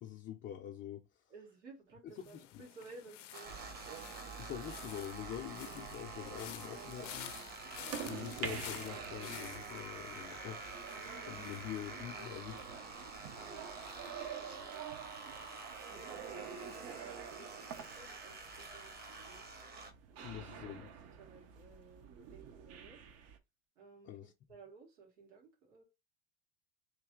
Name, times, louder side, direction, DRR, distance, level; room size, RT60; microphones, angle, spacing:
voice 1, 0.0-1.1 2.5-2.6 4.4-7.4 8.0-10.6 11.2-12.6 20.2-20.9 24.0-24.3, left 11 dB, 30° left, 0.5 m, -45 dB
voice 2, 1.3-3.6 13.4-14.8 15.9-19.5 20.1-20.5 21.2-23.0 23.8-25.8, right 4 dB, 80° right, 2.0 m, -57 dB
sound 1, 2.2-15.2 15.5-15.9, left 14 dB, 90° left, 0.5 m, -53 dB
sound 2, 3.3-19.9, right 3 dB, 25° right, 0.9 m, -48 dB
sound 3, 3.4-23.4, right 7 dB, 45° right, 0.7 m, -48 dB
3.3 x 2.7 x 3.7 m
hypercardioid pair, 105°, 36 cm